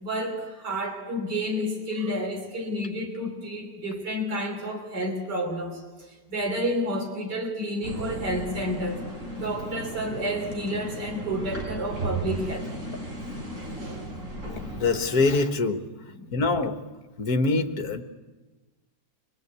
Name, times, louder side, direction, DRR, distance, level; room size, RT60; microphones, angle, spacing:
voice 1, 0.0-9.0 9.4-12.7 13.8-14.1 16.1-16.4, equal, 75° right, 0 dB, 3.8 m, -30 dB
sound 1, 7.8-15.3, right 1 dB, 45° right, 4.3 m, -35 dB
voice 2, 14.5-15.8 16.3-16.8 17.2-18.0, left 3 dB, 65° left, 7 dB, 1.9 m, -24 dB
25.5 x 21.0 x 8.3 m, 1.2 s
omnidirectional pair, 1.8 m